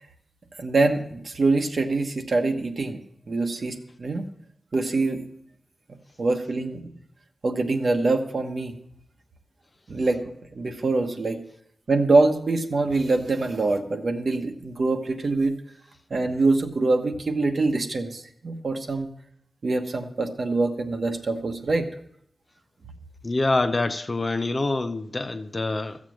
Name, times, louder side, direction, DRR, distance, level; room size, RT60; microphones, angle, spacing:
voice 1, 0.6-3.0 3.3-4.3 4.7-5.2 6.2-6.8 7.4-8.7 9.9-10.2 10.5-11.4 11.9-15.5 16.1-19.1 19.6-21.9, right 3 dB, 55° right, 1.2 m, -24 dB
voice 2, 23.2-26.0, left 2 dB, 35° left, 0.6 m, -25 dB
14.5 x 7.4 x 6.3 m
wide cardioid pair, 120°, 0 cm